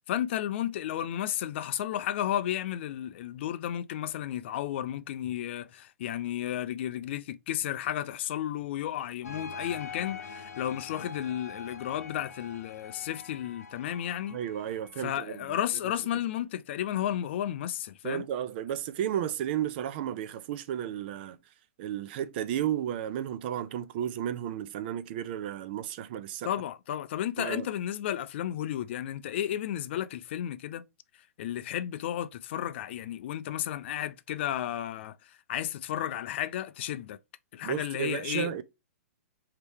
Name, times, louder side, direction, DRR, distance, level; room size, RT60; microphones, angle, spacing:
voice 1, 0.1-14.4 15.0-18.3 26.4-30.8 31.4-37.2 37.5-38.6, left 11 dB, 50° left, 0.4 m, -33 dB
sound 1, 9.2-15.7, left 5 dB, 85° left, 0.7 m, -44 dB
voice 2, 14.3-15.4 18.0-21.4 21.8-26.5 27.4-27.7 37.6-38.6, right 10 dB, 40° right, 0.5 m, -33 dB
4.5 x 2.9 x 3.4 m
hypercardioid pair, 150°, 8 cm